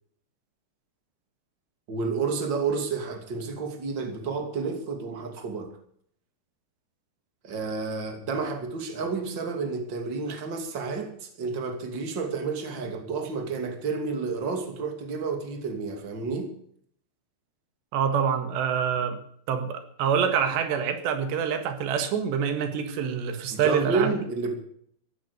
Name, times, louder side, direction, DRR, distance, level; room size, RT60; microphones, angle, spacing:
voice 1, 1.9-5.7 7.4-16.5 23.5-24.6, right 4 dB, 30° right, 4 dB, 3.0 m, -30 dB
voice 2, 17.9-19.2 19.5-24.2, right 7 dB, 85° right, 8 dB, 3.9 m, -26 dB
15.5 x 11.0 x 7.0 m, 0.63 s
omnidirectional pair, 4.9 m